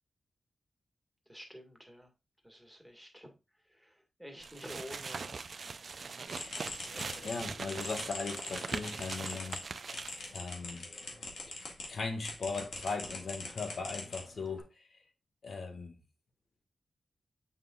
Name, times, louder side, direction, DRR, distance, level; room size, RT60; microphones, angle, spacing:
voice 1, 1.3-2.1 2.4-3.3 3.8-3.9 4.2-5.4, equal, ahead, 2.0 m, -49 dB
sound 1, 4.4-10.4, right 4 dB, 60° right, 0.5 m, -41 dB
sound 2, 6.3-11.9 12.2-14.6, left 3 dB, 90° left, 2.1 m, -43 dB
voice 2, 7.2-9.6 10.3-10.8 11.9-14.7 15.4-16.0, left 4 dB, 65° left, 1.7 m, -38 dB
7.7 x 5.5 x 2.5 m
cardioid pair, 75°, 0 cm